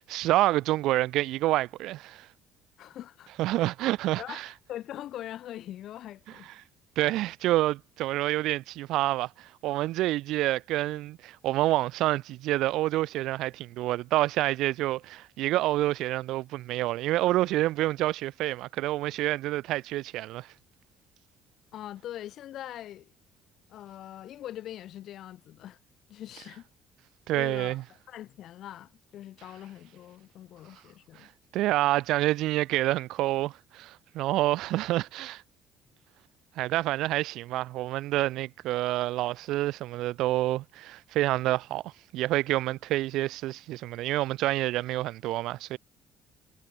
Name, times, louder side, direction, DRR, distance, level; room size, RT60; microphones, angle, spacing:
voice 1, 0.0-2.3 3.4-4.5 7.0-20.5 27.3-27.8 31.2-31.3 31.5-35.4 36.6-45.8, right 16 dB, 75° right, 0.9 m, -28 dB
voice 2, 2.8-3.3 3.6-3.7 4.2-4.4 4.7-6.5 21.7-23.1 23.7-25.8 26.1-26.7 27.3-27.8 28.1-31.3, left 12 dB, 60° left, 6.7 m, -42 dB
cardioid pair, 130°, 0 cm